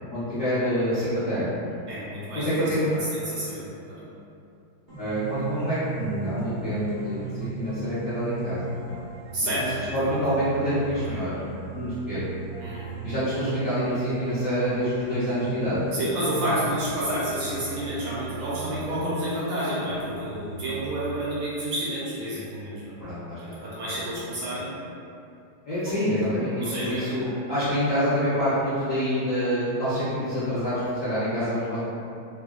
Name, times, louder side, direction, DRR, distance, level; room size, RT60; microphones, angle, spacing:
voice 1, 0.1-1.5 2.3-2.8 5.0-8.7 9.9-12.3 13.0-15.8 23.0-23.6 25.7-31.8, equal, 65° left, -15 dB, 0.8 m, -27 dB
voice 2, 1.9-4.0 9.3-10.2 10.9-11.2 12.6-12.9 15.9-23.0 23.4-24.7 25.9-26.0 26.6-27.1, right 1 dB, 75° right, -8 dB, 1.1 m, -30 dB
sound 1, 4.9-20.9, right 4 dB, 40° right, 0.6 m, -37 dB
3.4 x 2.1 x 2.3 m, 2.7 s
omnidirectional pair, 2.3 m